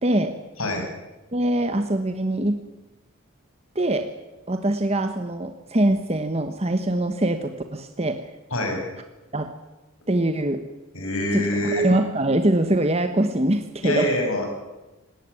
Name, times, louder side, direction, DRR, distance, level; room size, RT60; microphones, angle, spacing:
voice 1, 0.0-0.4 1.3-2.6 3.7-4.1 4.5-8.2 9.3-9.6 10.1-10.6 11.3-14.1, right 1 dB, 30° right, 7 dB, 1.1 m, -23 dB
voice 2, 10.9-11.9 13.8-14.5, equal, 75° left, 2 dB, 7.1 m, -24 dB
19.0 x 18.5 x 9.7 m, 1.1 s
head